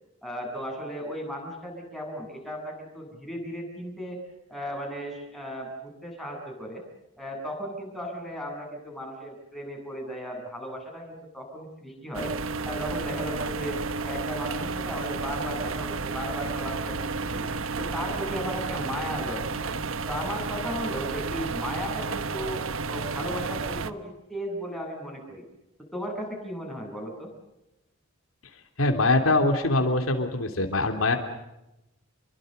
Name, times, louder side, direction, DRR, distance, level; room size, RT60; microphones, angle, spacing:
voice 1, 0.2-4.2 4.5-6.8 7.2-12.3 12.6-17.4 17.8-19.6 20.1-22.6 22.9-25.4 25.9-27.3, equal, ahead, 0 dB, 8.0 m, -36 dB
sound 1, 12.1-23.9, right 4 dB, 75° right, 1.2 m, -32 dB
voice 2, 28.8-31.2, left 2 dB, 80° left, 5 dB, 3.2 m, -23 dB
28.0 x 23.5 x 6.7 m, 0.93 s
head